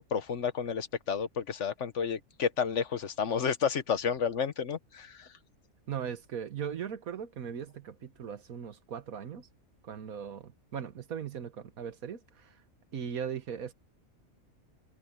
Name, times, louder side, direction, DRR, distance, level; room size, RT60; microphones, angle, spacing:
voice 1, 0.0-5.3, left 7 dB, 60° left, 1.3 m, -31 dB
voice 2, 5.9-9.5 9.8-12.6 12.9-13.7, right 8 dB, 85° right, 1.7 m, -39 dB
open air
omnidirectional pair, 1.5 m